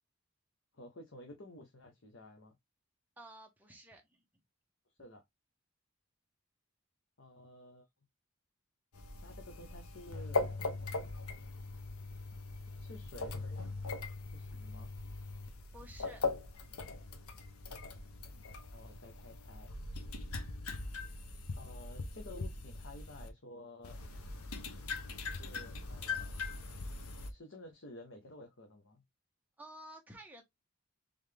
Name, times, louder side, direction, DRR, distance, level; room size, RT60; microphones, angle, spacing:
voice 1, 0.7-2.5 5.0-5.2 7.2-7.8 9.2-10.4 12.8-13.6 14.3-14.9 18.3-18.4 18.7-19.7 21.6-24.0 25.3-26.4 27.3-29.0, left 1 dB, 60° left, 0.9 m, -52 dB
voice 2, 3.2-4.2 15.7-16.2 29.6-30.4, right 1 dB, 10° right, 1.0 m, -52 dB
sound 1, 8.9-23.3 23.8-27.3, left 3 dB, 85° left, 0.9 m, -41 dB
3.7 x 3.5 x 3.3 m
head